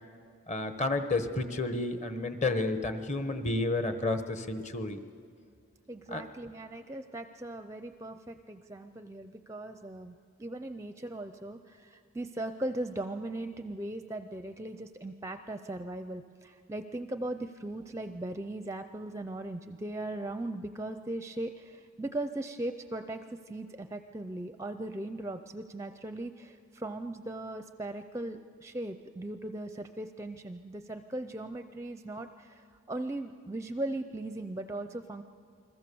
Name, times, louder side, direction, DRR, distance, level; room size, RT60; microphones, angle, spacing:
voice 1, 0.5-5.0 6.1-6.2, left 2 dB, 35° left, 8 dB, 1.2 m, -31 dB
voice 2, 5.9-35.2, right 1 dB, 15° right, 9 dB, 0.5 m, -38 dB
28.5 x 21.5 x 7.0 m, 2.2 s
head